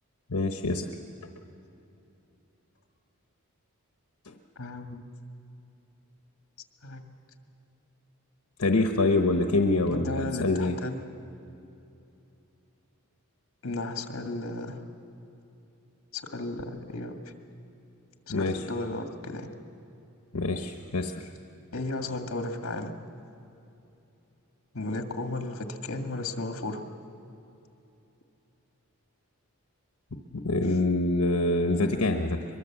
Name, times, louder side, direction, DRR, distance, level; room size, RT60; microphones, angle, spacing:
voice 1, 0.3-0.9 4.3-4.4 8.6-10.8 18.3-18.6 20.3-21.3 30.1-32.4, left 2 dB, 80° left, 4 dB, 1.1 m, -26 dB
voice 2, 4.6-5.1 6.8-7.0 9.9-11.0 13.6-14.8 16.1-17.3 18.3-19.5 21.7-22.9 24.7-26.8, left 2 dB, 60° left, 4 dB, 1.9 m, -34 dB
23.5 x 22.5 x 7.3 m, 2.9 s
head